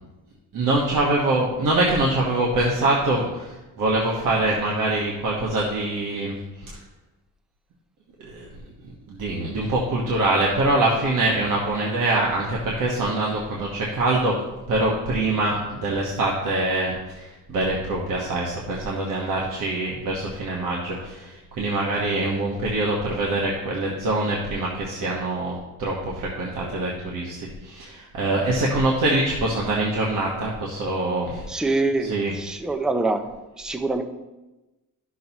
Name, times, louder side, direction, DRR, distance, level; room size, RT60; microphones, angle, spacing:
voice 1, 0.5-6.4 8.2-8.5 9.1-14.3 14.7-25.5 25.8-27.4 27.6-31.4 32.1-32.3, right 2 dB, 75° right, -3 dB, 1.3 m, -24 dB
voice 2, 31.5-33.3 33.6-34.0, right 2 dB, ahead, 7 dB, 0.3 m, -25 dB
12.5 x 6.4 x 2.9 m, 1.1 s
wide cardioid pair, 180°, 32 cm